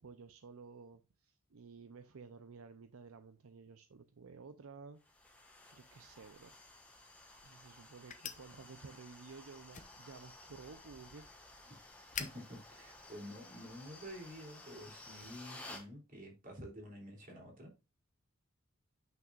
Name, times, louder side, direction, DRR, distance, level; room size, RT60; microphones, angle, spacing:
voice 1, 0.0-5.0 5.7-6.5 7.4-11.3, right 4 dB, 70° right, 0.6 m, -53 dB
sound 1, 5.0-15.9, left 2 dB, 5° left, 1.5 m, -55 dB
sound 2, 6.7-13.9, left 8 dB, 35° left, 0.9 m, -51 dB
voice 2, 12.2-17.7, equal, 40° right, 3.0 m, -49 dB
9.2 x 6.0 x 2.4 m
head